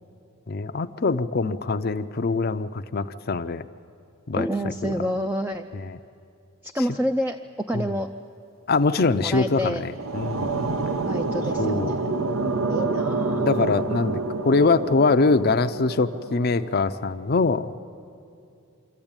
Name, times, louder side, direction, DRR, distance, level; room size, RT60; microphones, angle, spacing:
voice 1, 0.5-3.6 4.3-4.5 4.8-5.0 5.7-6.0 7.7-7.9 8.7-10.5 11.6-11.9 13.4-14.2 14.4-17.7, left 3 dB, 45° left, 9 dB, 0.6 m, -23 dB
voice 2, 4.4-5.7 6.6-8.1 9.0-9.8 11.0-12.0 12.7-13.5, equal, 10° right, 6 dB, 0.4 m, -28 dB
sound 1, 9.6-16.7, right 3 dB, 80° right, 0.9 m, -28 dB
25.0 x 14.0 x 8.8 m, 2.5 s
head